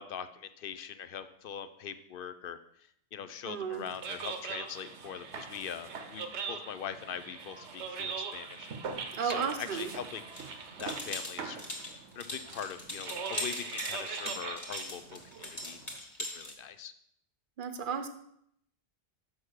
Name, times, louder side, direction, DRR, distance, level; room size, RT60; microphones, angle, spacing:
voice 1, 0.0-2.6 3.1-8.7 9.2-10.3 10.8-11.6 12.2-15.8 16.3-16.9, left 8 dB, 60° left, 12 dB, 0.6 m, -42 dB
voice 2, 3.4-3.8 9.2-9.9 17.6-18.1, right 7 dB, 50° right, 8 dB, 0.9 m, -33 dB
sound 1, 3.7-16.0, right 5 dB, 70° right, 1.1 m, -41 dB
sound 2, 10.3-16.5, left 1 dB, 35° left, 1.8 m, -40 dB
6.4 x 5.6 x 6.5 m, 0.71 s
omnidirectional pair, 1.2 m